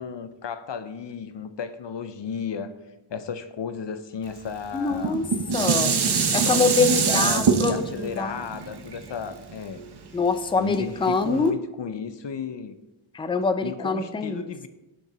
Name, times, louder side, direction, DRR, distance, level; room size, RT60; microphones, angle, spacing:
voice 1, 0.0-2.7 3.1-5.2 6.4-9.8 10.6-12.7 13.6-14.7, left 6 dB, 60° left, 11 dB, 0.5 m, -34 dB
voice 2, 4.7-5.3 5.5-6.0 6.3-8.4 10.1-11.6 13.1-14.5, left 4 dB, 10° left, 11 dB, 0.3 m, -24 dB
Dishes pots and pans, 4.9-10.2 10.7-10.8, right 5 dB, 50° right, 0.7 m, -24 dB
6.9 x 4.6 x 3.9 m, 0.99 s
wide cardioid pair, 75°, 49 cm